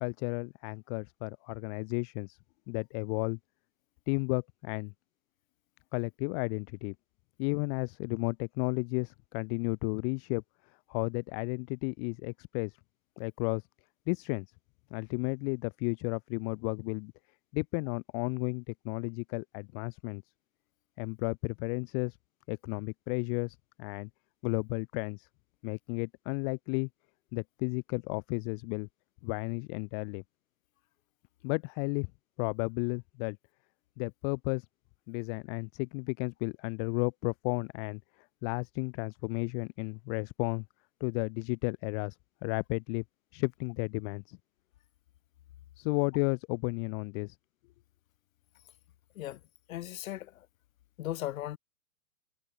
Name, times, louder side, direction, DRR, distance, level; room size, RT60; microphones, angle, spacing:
voice 1, 0.0-2.4 2.7-3.4 4.1-4.9 5.9-6.9 7.4-10.4 10.9-12.8 13.2-13.7 14.1-14.5 14.9-17.1 17.5-20.2 21.0-22.2 22.5-24.1 24.4-25.3 25.6-26.9 27.3-28.9 29.2-30.2 31.4-32.1 32.4-33.4 34.0-34.7 35.1-38.0 38.4-40.6 41.0-42.2 42.4-43.0 43.3-44.4 45.8-47.4, left 40 dB or more, 20° left, 0.5 m, -33 dB
voice 2, 49.7-50.3 51.0-51.6, left 13 dB, 55° left, 2.2 m, -37 dB
hypercardioid pair, 140°, 47 cm